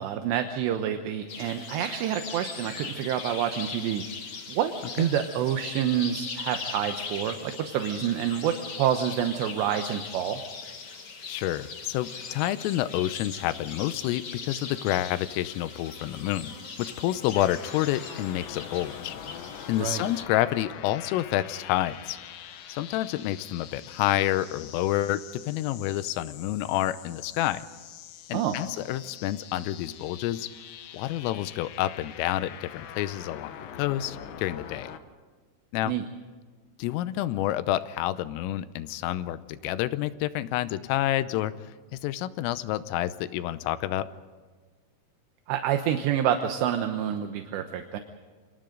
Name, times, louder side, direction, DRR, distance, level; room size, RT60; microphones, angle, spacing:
voice 1, 0.0-4.0 4.5-10.4 19.8-20.0 28.3-28.6 35.8-36.1 45.5-48.0, right 10 dB, 75° right, 6 dB, 2.9 m, -28 dB
sound 1, 1.3-20.2, left 5 dB, 50° left, 1.8 m, -40 dB
voice 2, 11.3-19.2 19.7-22.2 22.7-25.2 25.5-27.7 28.3-30.5 30.9-34.9 35.7-35.9 36.8-41.5 42.0-44.1, left 14 dB, 85° left, 13 dB, 3.4 m, -28 dB
sound 2, 17.3-35.0, left 9 dB, 70° left, 3.2 m, -44 dB
29.0 x 26.0 x 3.9 m, 1.5 s
omnidirectional pair, 5.8 m